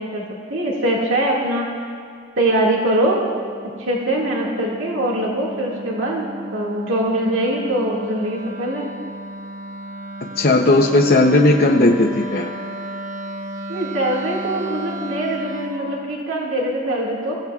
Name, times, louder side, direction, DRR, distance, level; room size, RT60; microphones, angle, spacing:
voice 1, 0.0-1.9 2.4-3.2 3.8-6.2 6.5-8.8 13.7-17.3, right 1 dB, 80° right, -3 dB, 2.1 m, -22 dB
Wind instrument woodwind instrument, 3.0-15.9, right 1 dB, 40° right, 0.8 m, -34 dB
voice 2, 10.4-12.5, left 2 dB, 50° left, 0 dB, 0.7 m, -15 dB
25.5 x 15.5 x 2.4 m, 2.2 s
head